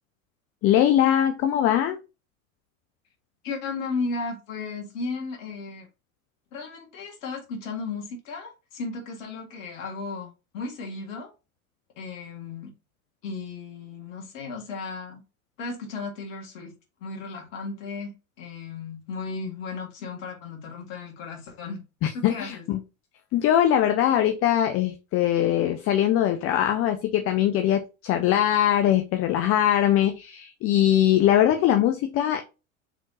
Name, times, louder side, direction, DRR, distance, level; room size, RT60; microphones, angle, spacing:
voice 1, 0.6-2.0 22.2-22.8 23.3-32.4, left 11 dB, 35° left, 0.6 m, -21 dB
voice 2, 3.4-5.9 6.5-11.3 12.0-12.7 13.2-15.2 15.6-16.7 17.0-21.8 22.1-22.7, left 4 dB, 65° left, 2.1 m, -35 dB
4.8 x 3.6 x 2.8 m
hypercardioid pair, 95°, 42 cm